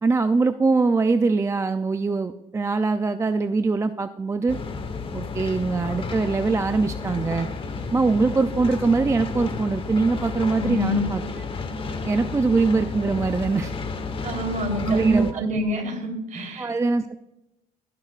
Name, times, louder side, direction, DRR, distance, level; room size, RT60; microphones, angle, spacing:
voice 1, 0.0-4.6 5.1-7.5 7.9-11.2 12.1-13.7 14.9-15.5 16.6-17.1, right 4 dB, 15° right, 9 dB, 0.4 m, -22 dB
sound 1, 4.5-15.3, left 4 dB, 30° left, 1.1 m, -32 dB
voice 2, 10.5-11.0 14.2-15.0 15.3-16.7, left 1 dB, 50° right, 2 dB, 3.6 m, -27 dB
16.0 x 10.5 x 2.4 m, 0.91 s
cardioid pair, 110°, 17 cm